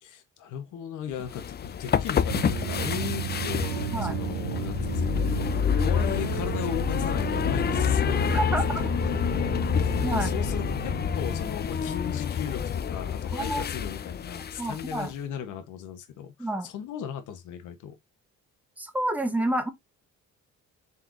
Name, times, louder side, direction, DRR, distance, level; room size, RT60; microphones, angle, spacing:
voice 1, 0.0-5.3 5.8-8.4 8.8-18.0, left 8 dB, 80° left, 0.9 m, -37 dB
sound 1, 1.2-15.1, left 8 dB, 35° left, 0.4 m, -28 dB
sound 2, 2.3-11.5, right 7 dB, 85° right, 1.2 m, -33 dB
voice 2, 8.3-8.6 10.0-10.3 13.3-13.6 14.6-15.1 16.4-16.7 18.8-19.7, right 1 dB, 5° right, 0.8 m, -28 dB
4.3 x 3.9 x 2.4 m
cardioid pair, 90°, 30 cm